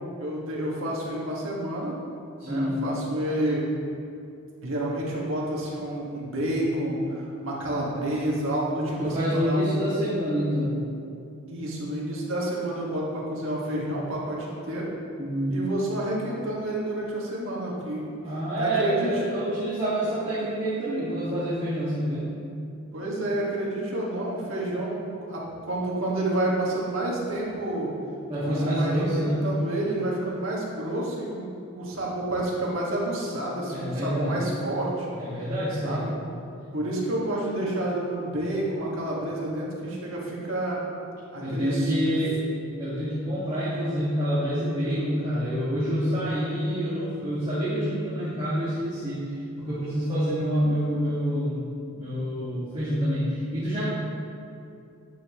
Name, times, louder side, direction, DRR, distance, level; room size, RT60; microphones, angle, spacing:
voice 1, 0.2-1.9 2.4-3.6 4.6-9.9 11.5-14.9 15.5-18.1 18.6-19.2 22.9-27.9 28.4-35.1 35.7-36.1 36.7-40.8 41.3-42.2, right 1 dB, 60° right, -4 dB, 1.8 m, -29 dB
voice 2, 2.4-2.8 9.0-10.8 15.2-15.6 18.2-22.3 28.3-29.5 33.7-34.4 35.1-36.0 41.4-42.4 42.8-51.6 52.0-53.9, equal, 25° right, -12 dB, 1.9 m, -27 dB
10.5 x 6.8 x 3.1 m, 2.5 s
head